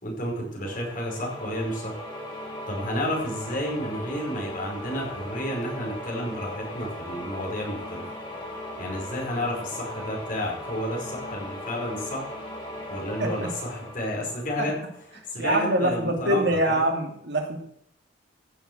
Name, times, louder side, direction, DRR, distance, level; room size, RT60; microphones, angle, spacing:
voice 1, 0.0-1.9 2.7-8.0 8.8-12.3 12.9-14.8 15.2-16.9, equal, 45° left, -2 dB, 5.0 m, -31 dB
sound 1, 0.6-15.2, left 1 dB, 25° left, 4.8 m, -38 dB
voice 2, 15.4-17.6, right 1 dB, 60° right, 3 dB, 2.5 m, -24 dB
15.0 x 7.1 x 8.0 m, 0.73 s
head